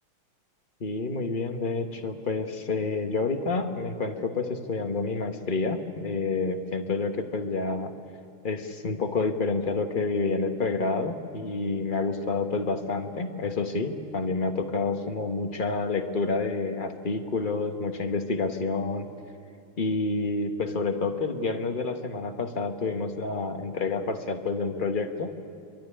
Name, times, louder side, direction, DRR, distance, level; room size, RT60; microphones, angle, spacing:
voice 1, 0.8-7.9 8.4-19.1 19.8-25.3, left 3 dB, 45° left, 6 dB, 0.6 m, -29 dB
26.5 x 12.0 x 9.9 m, 2.5 s
omnidirectional pair, 2.4 m